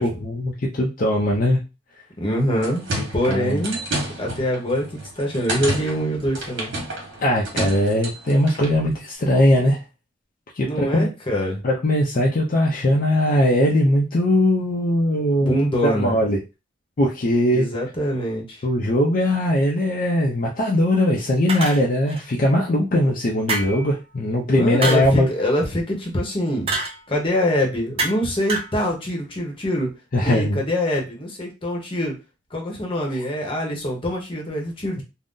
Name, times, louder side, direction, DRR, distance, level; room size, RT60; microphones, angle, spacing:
voice 1, 0.0-1.6 2.9-3.6 7.2-9.8 10.5-11.1 11.6-16.4 17.0-17.7 18.6-25.3 30.1-30.6, left 1 dB, 45° left, -1 dB, 0.5 m, -20 dB
voice 2, 2.2-2.8 3.1-3.8 4.2-6.7 10.6-11.6 15.4-16.2 17.5-18.6 24.5-26.7 27.1-29.9 30.2-32.1 32.5-35.0, equal, 30° left, 0 dB, 0.8 m, -24 dB
sound 1, 2.4-8.8, right 1 dB, 65° right, 1.2 m, -31 dB
sound 2, 21.5-22.2 23.5-23.9 24.8-25.1 26.7-27.0 28.0-28.2 28.5-28.7, right 2 dB, 30° right, 0.6 m, -26 dB
2.5 x 2.0 x 3.6 m, 0.28 s
head